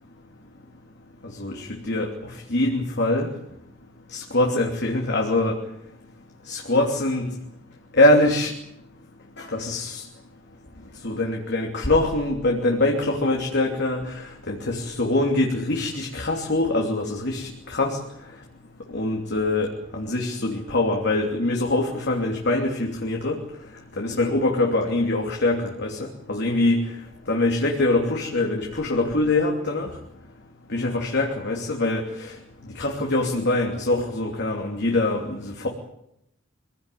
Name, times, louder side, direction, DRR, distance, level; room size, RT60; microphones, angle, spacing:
voice 1, 1.4-2.1 2.5-3.3 4.1-5.6 6.5-7.3 8.0-8.5 9.4-10.0 11.0-14.0 14.5-18.0 18.9-23.4 24.0-26.9 27.3-29.9 30.7-32.0 32.7-35.7, left 2 dB, 60° left, 1 dB, 3.1 m, -23 dB
24.0 x 17.5 x 9.3 m, 0.81 s
head